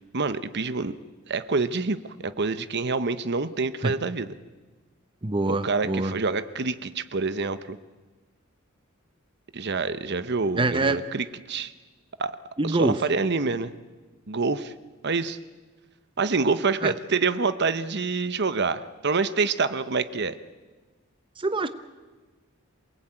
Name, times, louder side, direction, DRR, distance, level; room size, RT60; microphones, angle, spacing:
voice 1, 0.1-0.9 1.3-4.3 5.5-7.8 9.5-11.7 12.2-12.3 12.6-13.7 14.3-14.7 15.0-15.4 16.2-20.4, right 4 dB, 55° right, 12 dB, 1.0 m, -27 dB
voice 2, 5.2-6.2 10.6-11.0 12.6-13.0 16.8-16.9 21.4-21.7, right 2 dB, 25° right, 10 dB, 0.8 m, -25 dB
27.0 x 19.5 x 8.9 m, 1.3 s
head